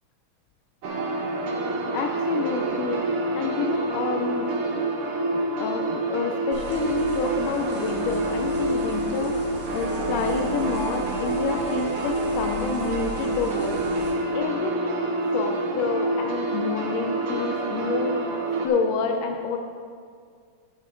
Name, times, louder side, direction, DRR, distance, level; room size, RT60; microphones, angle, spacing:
sound 1, 0.8-18.7, right 2 dB, 80° right, 1.3 m, -27 dB
voice 1, 1.9-4.5 5.3-13.8 14.3-18.4 18.6-19.6, left 5 dB, 80° left, 4 dB, 2.1 m, -29 dB
sound 2, 6.5-14.1, left 1 dB, 25° right, 2.1 m, -38 dB
11.5 x 8.2 x 3.8 m, 2.1 s
omnidirectional pair, 3.8 m